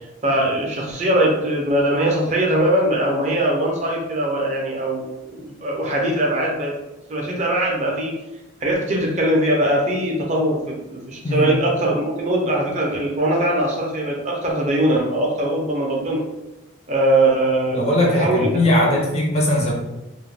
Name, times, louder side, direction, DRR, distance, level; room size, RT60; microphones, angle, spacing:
voice 1, 0.2-6.7 7.1-8.1 8.6-16.2 16.9-17.8 18.1-18.5 18.8-18.9, right 1 dB, 35° right, -1 dB, 0.5 m, -21 dB
voice 2, 11.2-11.6 17.7-19.7, left 1 dB, 30° left, -1 dB, 0.5 m, -19 dB
2.3 x 2.1 x 3.2 m, 0.95 s
head